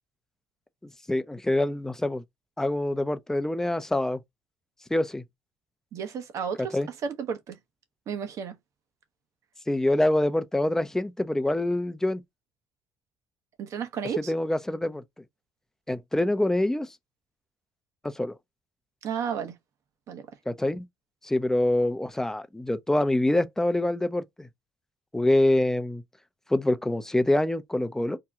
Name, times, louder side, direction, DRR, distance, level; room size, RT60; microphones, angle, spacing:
voice 1, 1.1-2.2 2.6-4.2 4.9-5.2 6.7-6.9 9.7-12.2 14.3-15.0 15.9-16.9 18.0-18.3 20.5-20.9 21.2-24.5 25.1-26.0 26.5-28.2, left 1 dB, 10° left, 0.5 m, -25 dB
voice 2, 5.9-7.6 8.1-8.6 13.6-14.3 19.0-19.5 20.1-20.3, right 7 dB, 55° right, 0.9 m, -32 dB
2.8 x 2.2 x 3.5 m
supercardioid pair, 80°, 6 cm